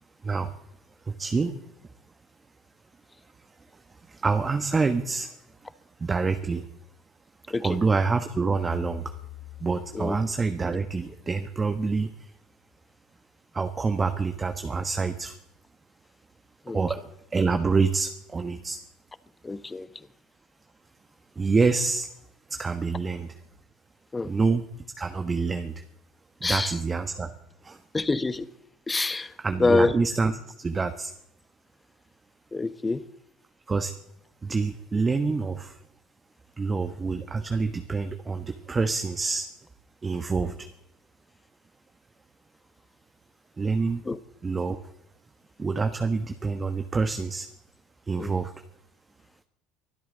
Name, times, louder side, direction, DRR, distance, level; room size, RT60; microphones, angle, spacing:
voice 1, 1.1-1.5 4.1-5.3 6.0-6.6 7.6-9.1 9.6-12.3 13.5-15.3 16.7-17.0 17.3-18.8 21.4-22.1 22.5-23.3 24.2-24.6 25.0-25.8 26.4-27.3 27.6-27.8 29.4-30.3 30.6-31.1 33.7-33.9 34.4-35.8 36.6-39.5 40.0-40.7 43.6-44.0 44.4-44.8 45.6-47.5 48.1-48.5, right 4 dB, 25° right, 1.3 m, -26 dB
sound 1, 8.7-11.5, left 15 dB, 60° left, 1.4 m, -44 dB
voice 2, 19.4-20.1 24.1-24.3 26.4-26.7 27.9-28.5 28.9-29.3 29.6-30.0 32.5-33.0 44.0-44.2 48.2-48.4, left 3 dB, 20° left, 0.9 m, -26 dB
23.5 x 12.5 x 4.0 m
hypercardioid pair, 75°, 0 cm